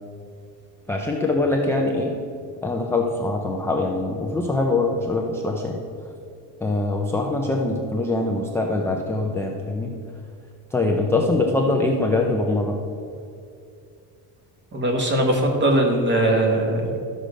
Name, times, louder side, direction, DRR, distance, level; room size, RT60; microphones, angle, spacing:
voice 1, 0.9-2.1 2.6-5.8 6.6-9.9 10.7-12.8, left 2 dB, 5° left, -1 dB, 0.3 m, -23 dB
voice 2, 14.7-17.0, right 1 dB, 25° right, 2 dB, 1.4 m, -20 dB
12.5 x 6.5 x 5.0 m, 2.4 s
cardioid pair, 170°, 42 cm